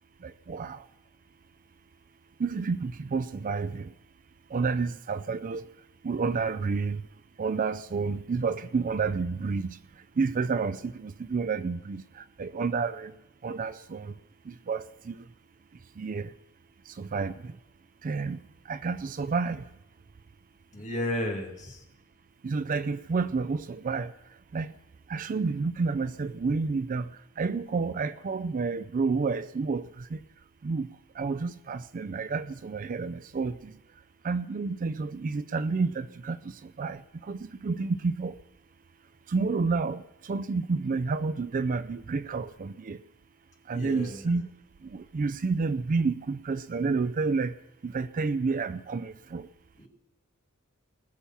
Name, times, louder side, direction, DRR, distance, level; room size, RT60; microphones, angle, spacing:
voice 1, 0.2-0.9 2.4-3.9 4.5-5.7 6.0-7.1 7.4-13.2 13.4-14.2 14.4-15.3 16.0-16.3 16.9-17.6 18.0-19.7 22.4-24.1 24.5-24.7 25.1-30.2 30.6-33.8 34.2-38.4 39.3-43.0 43.7-44.5 44.8-47.6 47.8-49.5, right 4 dB, 40° right, 0.4 m, -30 dB
voice 2, 20.7-21.8 43.7-44.2 49.8-49.9, left 1 dB, 35° left, 2.3 m, -33 dB
19.0 x 6.9 x 5.7 m
head